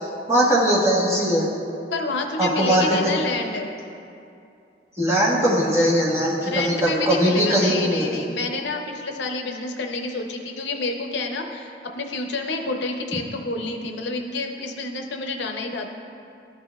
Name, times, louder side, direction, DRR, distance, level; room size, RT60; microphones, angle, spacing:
voice 1, 0.3-1.5 2.4-3.1 5.0-8.1, equal, 15° right, -6 dB, 1.1 m, -20 dB
voice 2, 1.9-3.7 6.4-15.9, left 3 dB, 80° left, 3 dB, 0.6 m, -28 dB
12.5 x 4.3 x 2.3 m, 2.6 s
head